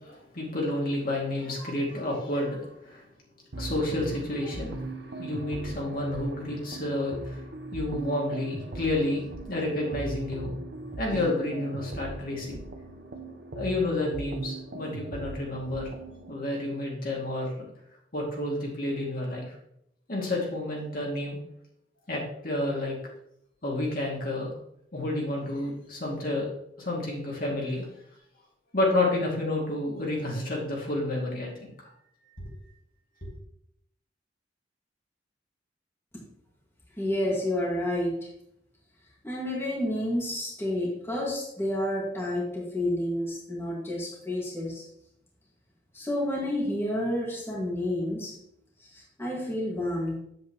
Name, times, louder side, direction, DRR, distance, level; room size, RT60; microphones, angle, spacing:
voice 1, 0.0-3.0 3.6-4.8 5.2-7.4 7.7-9.2 9.5-10.5 11.0-12.6 13.6-16.0 16.3-17.5 18.1-19.5 20.1-21.4 22.1-23.0 23.6-24.5 24.9-26.5 26.8-27.9 28.7-31.9, left 1 dB, 50° left, -2 dB, 2.4 m, -30 dB
sound 1, 3.5-16.3, right 2 dB, 70° right, 0.9 m, -39 dB
voice 2, 37.0-38.3 39.2-44.9 45.9-48.3 48.8-50.2, left 1 dB, 15° left, -4 dB, 1.9 m, -30 dB
8.8 x 7.8 x 3.0 m, 0.74 s
head